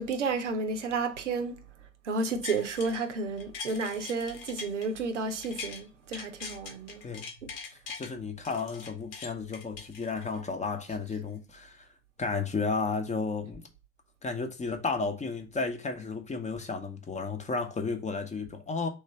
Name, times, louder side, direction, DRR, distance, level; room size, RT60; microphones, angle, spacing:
voice 1, 0.0-1.6 2.0-7.1 7.4-7.5, right 4 dB, 80° right, 0.6 m, -32 dB
sound 1, 2.2-3.0 3.4-5.8 6.1-8.1 8.4-10.4 10.9-11.0, left 5 dB, 60° left, 1.0 m, -42 dB
voice 2, 7.7-11.9 12.2-13.6 14.2-18.9, left 4 dB, 20° left, 0.7 m, -33 dB
3.4 x 3.2 x 4.2 m
figure-of-eight pair, 60°, 35 cm